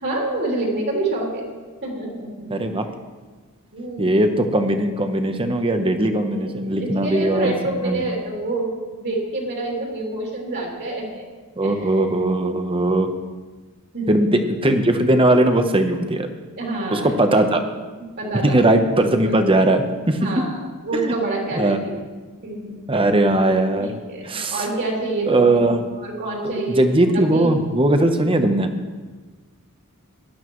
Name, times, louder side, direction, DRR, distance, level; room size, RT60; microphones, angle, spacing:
voice 1, 0.0-1.5 1.8-2.5 2.8-2.9 3.7-4.1 6.3-8.7 9.0-11.2 11.6-11.8 13.9-14.3 16.6-17.4 18.2-18.7 20.2-20.6 20.8-21.9 22.4-23.0 23.8-25.6 26.0-26.9 27.1-27.5, right 2 dB, 50° right, -2 dB, 3.1 m, -27 dB
voice 2, 2.5-2.9 4.0-8.0 11.6-13.1 14.1-16.3 16.9-17.6 18.3-20.4 20.9-21.1 21.6-21.8 22.9-23.9 24.2-24.7 25.3-25.9 26.7-28.7, right 1 dB, 25° right, 7 dB, 0.9 m, -19 dB
17.5 x 11.5 x 3.1 m, 1.3 s
head